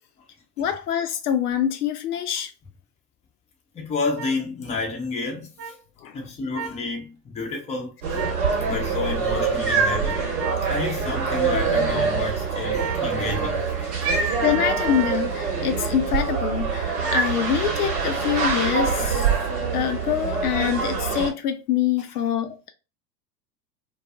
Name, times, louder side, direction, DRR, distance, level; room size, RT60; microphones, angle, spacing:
voice 1, 0.6-2.5 6.0-6.1 14.4-19.3 19.7-22.7, left 9 dB, 70° left, 0.5 m, -25 dB
voice 2, 3.7-5.7 6.1-8.3 8.7-10.2 10.7-14.3, left 3 dB, 15° left, 0.6 m, -30 dB
sound 1, 4.2-4.3 5.6-5.7 6.5-6.8 8.1-8.4 10.0-10.6 12.8-13.1 14.4-15.2 17.0-17.3, right 6 dB, 35° right, 0.4 m, -32 dB
sound 2, 8.0-21.3, right 5 dB, 60° right, 1.1 m, -25 dB
2.3 x 2.3 x 2.4 m
figure-of-eight pair, 85°, 48 cm